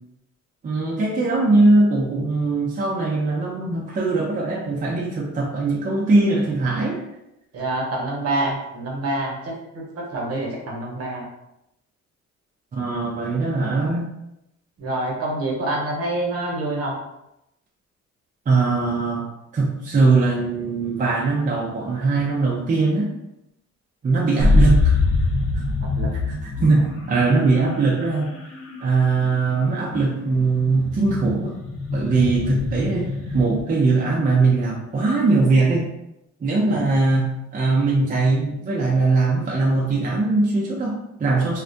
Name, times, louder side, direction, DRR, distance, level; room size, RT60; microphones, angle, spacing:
voice 1, 0.6-7.0 12.7-14.1 18.5-19.3 19.5-23.1 24.0-25.0 25.5-25.6 26.3-28.3 28.8-31.5 31.9-35.9 36.4-41.6, right 3 dB, 30° right, -3 dB, 0.5 m, -21 dB
voice 2, 7.5-11.2 14.8-17.0 25.9-26.1 36.7-36.8, right 2 dB, 50° right, -1 dB, 0.9 m, -26 dB
sound 1, 24.4-33.6, left 3 dB, 45° left, 0.7 m, -24 dB
2.3 x 2.1 x 2.6 m, 0.85 s
cardioid pair, 90°, 30 cm